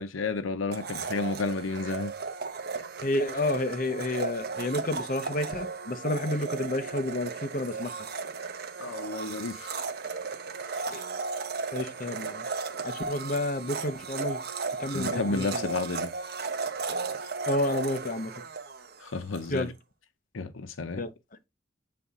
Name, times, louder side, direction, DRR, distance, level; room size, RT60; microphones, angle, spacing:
voice 1, 0.0-2.1 8.8-9.8 14.9-16.1 19.0-19.7 20.3-21.0, left 3 dB, 85° left, 0.8 m, -31 dB
Domestic sounds home sounds, 0.7-19.5, right 4 dB, 50° right, 0.9 m, -35 dB
voice 2, 3.0-7.9 10.9-11.0 11.7-12.5 12.8-14.4 14.8-15.4 17.5-18.3 19.5-19.7 21.0-21.1, left 1 dB, 45° left, 0.9 m, -30 dB
7.7 x 4.1 x 3.7 m
head